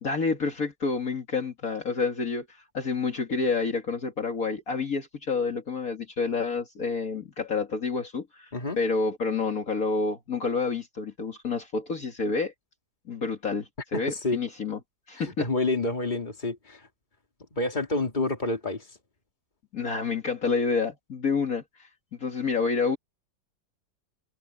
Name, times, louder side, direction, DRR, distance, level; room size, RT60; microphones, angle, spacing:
voice 1, 0.0-12.5 13.1-14.8 15.1-15.5 19.7-21.9 22.2-23.0, left 4 dB, 50° left, 2.4 m, -29 dB
voice 2, 13.9-14.4 15.4-16.8 17.5-18.8, left 2 dB, 25° left, 2.9 m, -28 dB
omnidirectional pair, 1.9 m